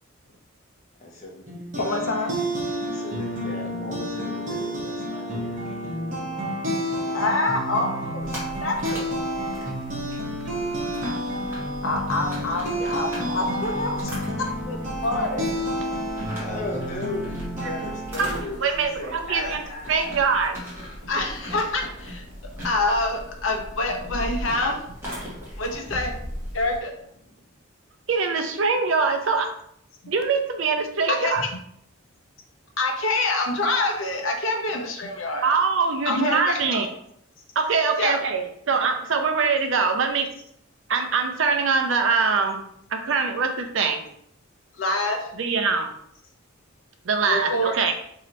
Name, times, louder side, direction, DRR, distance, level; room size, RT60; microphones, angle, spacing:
voice 1, 1.0-5.9 16.1-20.2, left 2 dB, 35° left, -1 dB, 0.9 m, -37 dB
sound 1, 1.5-18.4, equal, 40° right, 1.1 m, -30 dB
voice 2, 1.8-2.3 7.0-9.1 11.8-14.1 14.4-15.5 21.0-22.3 22.6-24.8 25.6-26.2 26.5-26.9 31.1-31.5 32.8-35.5 36.1-36.8 38.0-38.2 44.8-45.3 47.2-47.7, left 2 dB, 65° left, 2 dB, 0.7 m, -26 dB
sound 2, 8.2-26.8, equal, 10° right, 1.3 m, -38 dB
voice 3, 18.6-19.6 19.9-20.6 28.1-29.5 30.1-31.4 35.4-36.9 37.6-40.3 40.9-42.6 42.9-44.0 45.3-45.9 47.0-47.9, right 5 dB, 65° right, 5 dB, 0.5 m, -23 dB
3.1 x 2.8 x 4.0 m, 0.70 s
head